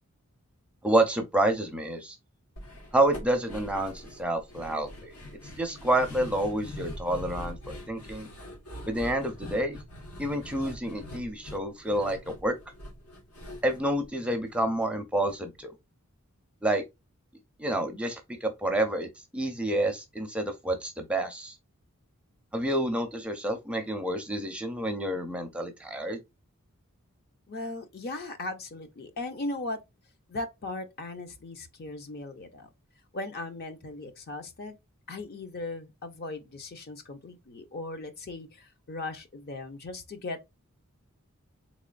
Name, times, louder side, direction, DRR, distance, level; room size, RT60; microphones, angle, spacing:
voice 1, 0.8-2.2 2.9-5.1 5.6-8.3 8.9-9.8 10.2-12.6 13.6-15.7 16.6-16.8 17.6-19.1 19.3-21.6 22.5-26.2, right 1 dB, 5° right, 0.5 m, -28 dB
sound 1, 2.6-14.8 15.1-15.2 15.6-15.7, equal, 90° left, 1.5 m, -43 dB
voice 2, 27.5-29.8 30.3-32.7 33.1-34.8 35.1-40.4, left 2 dB, 45° left, 0.6 m, -38 dB
3.7 x 3.0 x 2.4 m
head